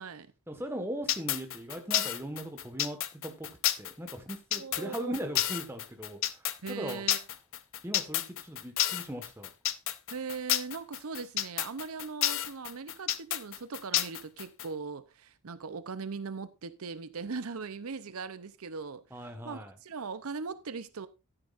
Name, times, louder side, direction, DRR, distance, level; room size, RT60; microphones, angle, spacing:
voice 1, 0.5-3.5 3.8-7.0 7.8-9.5 19.1-19.7, equal, 10° right, 1.5 m, -39 dB
sound 1, 1.1-14.7, left 12 dB, 65° left, 0.7 m, -30 dB
voice 2, 4.5-5.2 6.6-7.2 10.1-21.1, right 4 dB, 80° right, 0.7 m, -40 dB
12.0 x 10.0 x 2.5 m
head